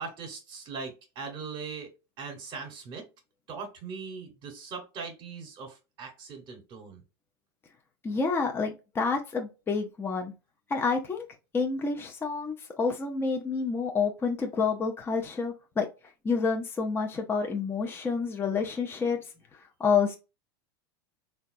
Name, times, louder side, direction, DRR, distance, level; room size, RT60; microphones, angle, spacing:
voice 1, 0.0-1.9 2.2-3.1 3.5-7.0, right 5 dB, 45° right, 1.0 m, -40 dB
voice 2, 8.0-10.3 10.7-11.3 11.5-15.9 16.2-19.2 19.8-20.2, left 5 dB, 20° left, 0.6 m, -28 dB
3.7 x 2.3 x 2.5 m
hypercardioid pair, 100°, 12 cm